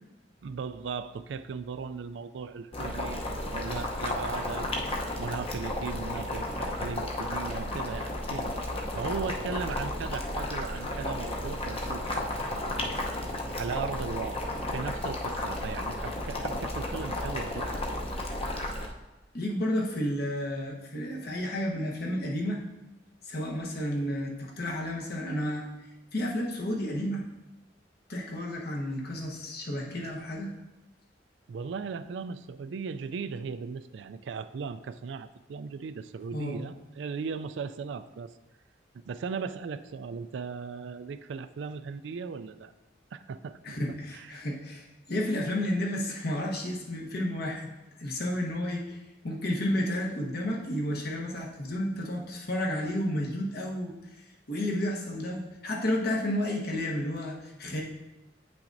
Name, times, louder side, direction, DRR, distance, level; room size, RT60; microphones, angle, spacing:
voice 1, 0.4-4.7 5.2-8.5 8.9-12.4 13.5-17.8 31.5-38.3 39.0-42.7 43.1-43.8 44.1-44.4, right 5 dB, 75° right, 12 dB, 0.3 m, -37 dB
Boiling, 2.7-18.9, left 1 dB, 35° left, 0.8 m, -33 dB
voice 2, 19.3-22.6 23.3-25.7 26.1-27.2 28.1-30.5 36.3-36.6 43.6-47.7 48.0-49.0 49.2-53.9 54.5-57.8, left 1 dB, 60° left, -1 dB, 1.1 m, -31 dB
8.6 x 5.8 x 2.6 m, 1.0 s
head